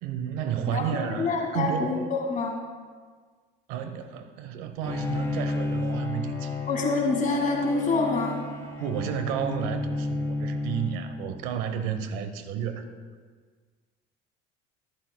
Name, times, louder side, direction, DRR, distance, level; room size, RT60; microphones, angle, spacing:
voice 1, 0.0-1.9 3.7-6.6 8.8-12.8, right 8 dB, 85° right, 9 dB, 1.0 m, -31 dB
voice 2, 0.7-2.6 6.7-8.4, left 3 dB, 40° left, 0 dB, 2.1 m, -26 dB
Bowed string instrument, 4.8-11.5, left 2 dB, 15° left, 3.3 m, -32 dB
14.5 x 13.5 x 2.3 m, 1.5 s
supercardioid pair, 100°, 21 cm